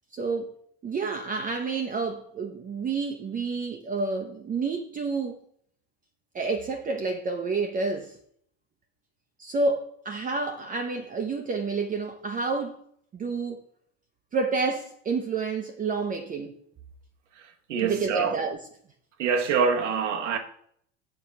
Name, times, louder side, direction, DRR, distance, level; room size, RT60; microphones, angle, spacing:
voice 1, 0.1-0.5 0.8-5.4 6.3-8.2 9.4-12.8 13.1-13.6 14.3-16.6 17.8-18.6, right 4 dB, 25° right, 0.7 m, -29 dB
voice 2, 17.7-18.4 19.2-20.4, right 6 dB, 90° right, 1.1 m, -25 dB
6.6 x 3.7 x 5.7 m
hypercardioid pair, 100°, 35 cm